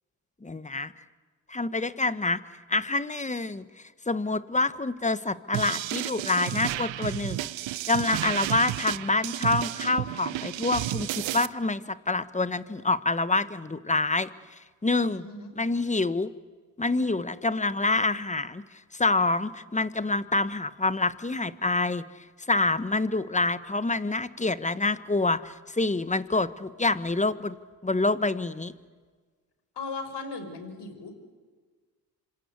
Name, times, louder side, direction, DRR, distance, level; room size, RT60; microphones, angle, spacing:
voice 1, 0.4-0.9 1.5-2.4 2.7-3.7 4.1-7.5 7.9-14.3 14.8-15.2 15.6-16.3 16.8-18.6 18.9-22.0 22.5-27.6 27.8-28.7, left 3 dB, 15° left, 14 dB, 1.4 m, -27 dB
sound 1, 5.5-11.5, right 15 dB, 65° right, 1.1 m, -32 dB
voice 2, 15.0-15.5 29.8-31.1, left 3 dB, 55° left, 8 dB, 5.5 m, -37 dB
27.0 x 26.0 x 8.3 m, 1.5 s
hypercardioid pair, 60°, 50 cm